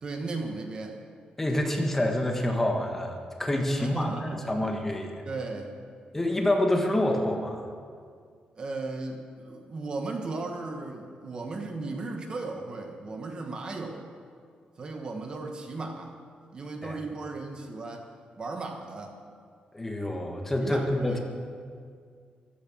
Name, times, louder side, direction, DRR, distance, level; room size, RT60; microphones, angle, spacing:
voice 1, 0.0-1.0 3.8-4.5 5.2-5.8 8.5-14.1 14.8-16.2 16.5-18.1 18.4-19.2 20.6-21.2, right 3 dB, 35° right, 4 dB, 1.3 m, -36 dB
voice 2, 1.4-4.1 4.4-5.2 6.1-7.7 16.8-17.0 19.7-21.2, left 1 dB, 10° left, 2 dB, 1.6 m, -27 dB
14.5 x 13.0 x 7.5 m, 2.1 s
wide cardioid pair, 175°, 3 cm